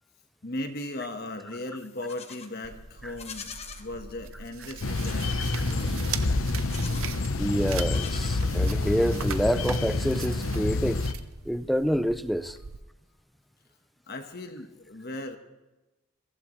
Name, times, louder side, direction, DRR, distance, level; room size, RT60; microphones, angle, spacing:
voice 1, 0.4-5.4 5.7-6.2 14.1-15.4, left 1 dB, 45° left, 1.4 m, -37 dB
Livestock farm animals working animals, 1.8-2.5 3.1-3.9 5.0-5.5 6.5-7.2 7.7-8.8, left 6 dB, 30° left, 1.2 m, -44 dB
sound 1, 2.6-12.8, right 7 dB, 75° right, 0.8 m, -41 dB
sound 2, 4.8-11.1, left 2 dB, 70° left, 0.9 m, -28 dB
voice 2, 7.4-11.1 11.5-12.6, equal, ahead, 0.5 m, -27 dB
22.0 x 14.5 x 3.2 m
head